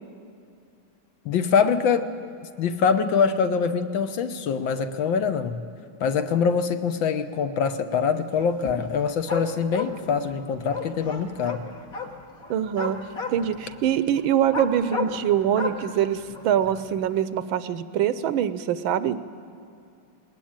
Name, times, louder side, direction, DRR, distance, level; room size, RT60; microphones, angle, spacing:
voice 1, 1.2-2.1 2.6-5.6 6.0-11.6, left 6 dB, 65° left, 9 dB, 1.5 m, -24 dB
sound 1, 8.4-8.9 9.3-17.2, left 4 dB, 45° left, 2.0 m, -34 dB
voice 2, 12.5-13.0 13.3-19.2, right 10 dB, 75° right, 13 dB, 1.4 m, -24 dB
20.5 x 19.0 x 8.8 m, 2.5 s
omnidirectional pair, 2.4 m